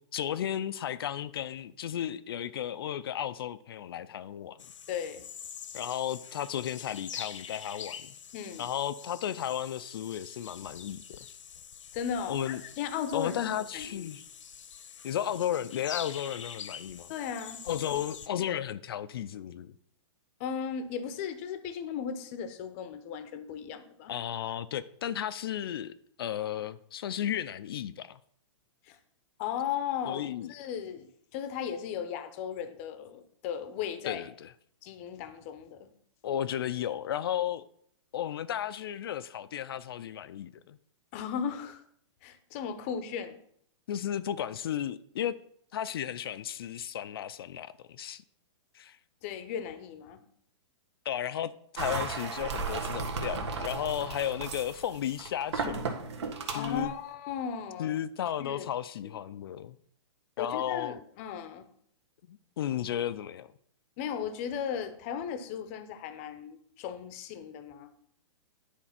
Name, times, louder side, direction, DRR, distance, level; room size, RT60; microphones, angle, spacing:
voice 1, 0.1-4.6 5.7-8.1 8.6-11.2 12.3-12.6 13.1-14.2 15.0-17.1 17.7-19.7 24.1-28.2 30.1-30.5 34.1-34.5 36.2-37.6 38.1-40.8 43.9-45.3 45.7-48.2 48.7-49.0 51.1-55.8 56.5-56.9 57.8-59.8 60.4-61.0 62.3-63.5, left 10 dB, 50° left, 0.4 m, -34 dB
sound 1, 4.6-18.3, left 8 dB, 85° left, 0.9 m, -45 dB
voice 2, 4.9-5.2 8.3-8.7 11.9-14.1 17.1-17.6 17.9-18.0 20.4-24.1 28.9-29.0 29.4-30.2 30.5-34.2 34.8-35.9 41.1-41.8 42.2-43.3 49.2-50.2 56.5-57.9 58.4-58.7 59.0-59.2 60.4-61.7 64.0-67.9, left 8 dB, 25° left, 0.7 m, -36 dB
sound 2, 51.8-56.9, right 4 dB, 65° right, 1.6 m, -35 dB
10.0 x 4.3 x 5.8 m
hypercardioid pair, 165°, 16 cm